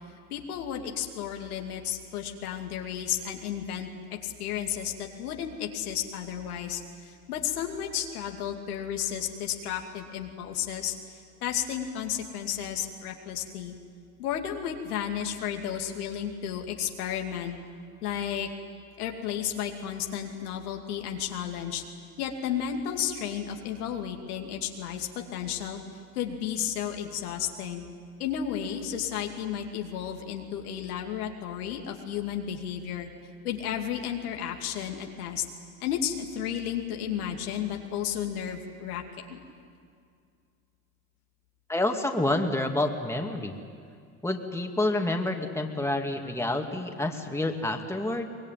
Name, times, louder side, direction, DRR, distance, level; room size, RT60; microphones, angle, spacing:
voice 1, 0.3-10.9 11.4-13.7 14.2-17.6 18.0-18.5 19.0-21.8 22.2-25.8 26.1-27.9 28.2-33.1 33.4-35.4 35.8-39.4, left 9 dB, 85° left, 3 dB, 2.5 m, -33 dB
voice 2, 41.7-43.5 44.2-48.3, left 2 dB, 5° left, 3 dB, 2.5 m, -28 dB
24.0 x 21.0 x 9.4 m, 2.3 s
hypercardioid pair, 85°, 44 cm